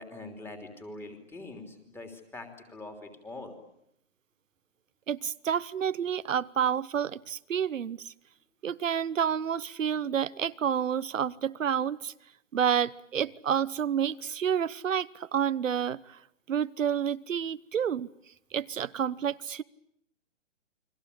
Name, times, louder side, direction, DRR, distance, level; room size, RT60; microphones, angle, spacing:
voice 1, 0.0-3.5, left 2 dB, 5° left, 3.2 m, -43 dB
voice 2, 5.1-8.1 8.6-12.1 12.5-16.2 16.5-18.1 18.5-19.6, right 8 dB, 85° right, 1.1 m, -29 dB
29.5 x 23.0 x 8.5 m
hypercardioid pair, 155°, 38 cm